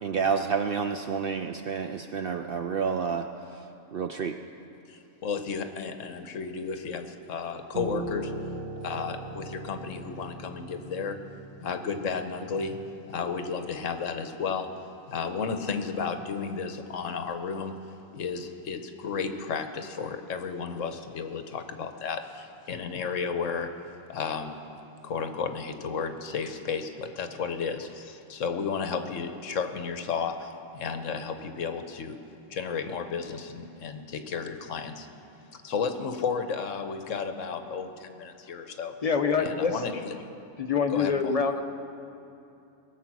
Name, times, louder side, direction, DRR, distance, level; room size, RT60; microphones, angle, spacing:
voice 1, 0.0-3.3 3.5-3.6 3.9-4.4, right 6 dB, 65° right, 6 dB, 0.6 m, -29 dB
voice 2, 4.9-8.3 8.8-11.2 11.6-12.8 13.1-14.7 15.1-17.8 18.1-23.7 24.1-24.5 25.0-32.2 32.5-35.1 35.6-38.9 39.4-40.3 40.9-41.4, left 5 dB, 70° left, 7 dB, 1.2 m, -33 dB
Piano, 7.7-13.0, right 2 dB, 45° right, 2.1 m, -39 dB
voice 3, 39.0-39.7 40.6-41.6, left 5 dB, 45° left, 6 dB, 0.5 m, -25 dB
21.0 x 7.6 x 6.1 m, 2.7 s
omnidirectional pair, 1.4 m